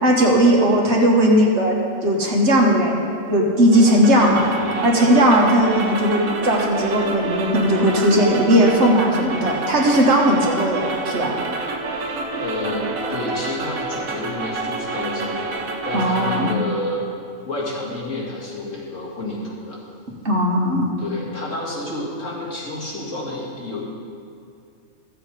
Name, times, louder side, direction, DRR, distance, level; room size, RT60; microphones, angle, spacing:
voice 1, 0.0-4.5 4.8-11.4 15.9-16.5 20.2-20.9, equal, 55° right, -1 dB, 1.7 m, -17 dB
sound 1, 3.7-16.6, right 3 dB, 85° right, 1.4 m, -28 dB
voice 2, 4.6-4.9 12.3-15.4 15.8-17.0 17.5-19.8 21.0-23.8, left 2 dB, 65° left, -5 dB, 2.5 m, -29 dB
14.0 x 7.6 x 4.9 m, 2.5 s
omnidirectional pair, 1.4 m